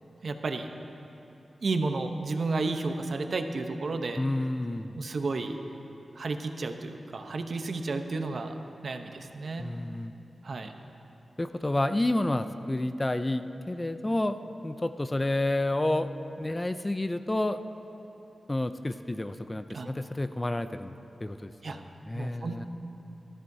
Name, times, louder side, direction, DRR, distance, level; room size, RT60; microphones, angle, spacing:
voice 1, 0.2-0.7 1.6-4.2 5.0-5.6 6.1-8.5 8.8-9.7 10.4-10.7 19.7-19.9 21.6-21.8 22.1-22.7, right 3 dB, 60° right, 6 dB, 0.8 m, -32 dB
voice 2, 4.2-5.0 9.6-10.1 11.4-14.4 14.6-16.1 16.4-17.6 18.5-20.9 21.2-22.7, left 1 dB, 20° left, 10 dB, 0.4 m, -30 dB
19.5 x 13.5 x 2.7 m, 3.0 s
wide cardioid pair, 100°, 0 cm